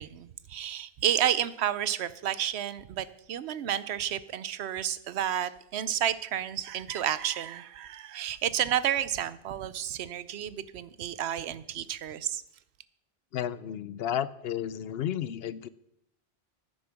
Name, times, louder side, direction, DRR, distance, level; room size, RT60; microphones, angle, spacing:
voice 1, 0.0-12.4, right 10 dB, 85° right, 16 dB, 0.9 m, -31 dB
voice 2, 13.3-15.7, left 10 dB, 75° left, 17 dB, 0.8 m, -32 dB
9.8 x 9.6 x 5.9 m, 0.77 s
omnidirectional pair, 1.1 m